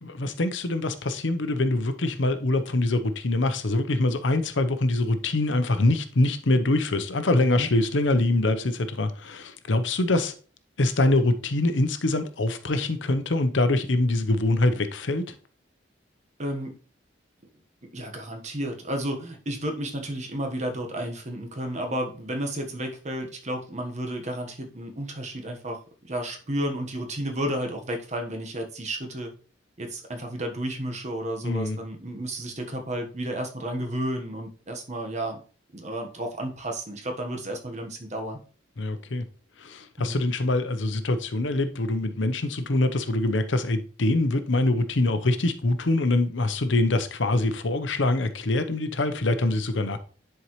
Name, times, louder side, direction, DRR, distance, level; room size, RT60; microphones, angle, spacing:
voice 1, 0.0-10.3 10.8-15.4 31.4-31.8 38.8-39.3 39.6-50.0, left 2 dB, 85° left, 0.8 m, -24 dB
voice 2, 16.4-16.7 17.9-25.8 26.1-29.3 29.8-35.4 35.7-38.4 40.0-40.2, right 1 dB, 40° right, 1.3 m, -32 dB
10.0 x 4.6 x 3.1 m
head